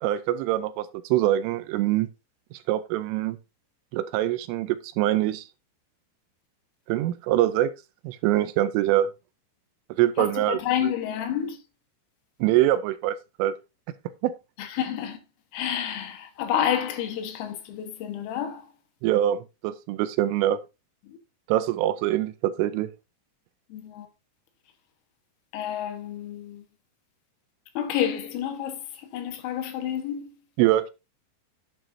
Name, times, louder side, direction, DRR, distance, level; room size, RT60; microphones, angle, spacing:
voice 1, 0.0-2.1 2.7-3.4 3.9-5.4 6.9-7.7 8.0-9.1 9.9-10.6 12.4-13.5 14.2-14.3 19.0-20.6 21.5-22.9 30.6-30.9, right 13 dB, 80° right, 3.1 m, -24 dB
voice 2, 10.2-11.6 14.6-15.2 15.5-18.7 21.0-21.2 23.7-24.1 25.5-26.6 27.8-30.3, left 10 dB, 85° left, 4.1 m, -29 dB
10.5 x 7.7 x 2.7 m
omnidirectional pair, 5.9 m